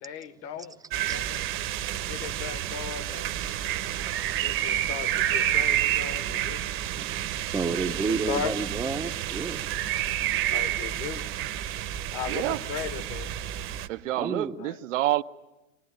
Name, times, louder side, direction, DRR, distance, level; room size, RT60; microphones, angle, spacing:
voice 1, 0.0-0.7 1.1-1.5 2.1-3.4 4.3-6.8 7.7-7.9 8.3-8.5 10.5-11.3 12.1-13.4 14.6-14.8, left 8 dB, 35° left, 1.2 m, -37 dB
sound 1, 0.9-13.9, right 12 dB, 30° right, 1.0 m, -29 dB
voice 2, 1.1-1.4 6.9-7.1 7.5-9.6 14.2-14.5, right 4 dB, 10° right, 0.8 m, -30 dB
voice 3, 12.3-12.6 13.9-15.2, right 14 dB, 60° right, 0.9 m, -28 dB
23.5 x 19.5 x 10.0 m
hypercardioid pair, 125°, 42 cm